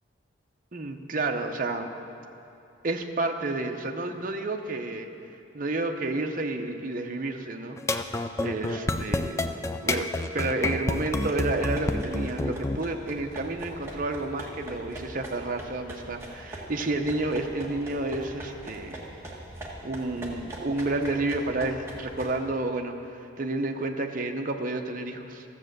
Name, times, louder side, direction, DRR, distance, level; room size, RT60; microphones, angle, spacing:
voice 1, 0.7-1.9 2.8-5.1 5.5-7.8 8.4-9.5 9.8-10.1 10.3-19.0 19.8-25.4, right 2 dB, 45° right, 4 dB, 0.7 m, -30 dB
sound 1, 7.8-12.8, left 2 dB, 15° left, 0.3 m, -28 dB
sound 2, 10.9-22.4, right 1 dB, 15° right, 1.4 m, -42 dB
13.5 x 7.6 x 6.6 m, 2.8 s
head